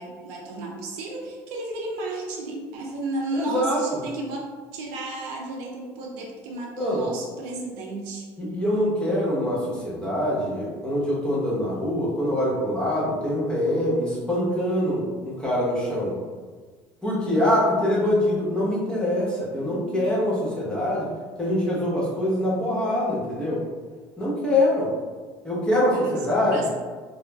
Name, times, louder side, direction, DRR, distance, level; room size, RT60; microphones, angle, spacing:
voice 1, 0.0-8.3 19.5-20.1 25.5-26.2 26.5-26.7, right 2 dB, 85° right, -1 dB, 0.5 m, -33 dB
voice 2, 3.3-3.8 6.8-7.0 8.4-16.2 17.0-21.1 21.4-23.6 24.2-24.9 25.4-26.6, left 1 dB, 10° left, -6 dB, 1.0 m, -24 dB
2.3 x 2.0 x 3.3 m, 1.4 s
supercardioid pair, 100°, 9 cm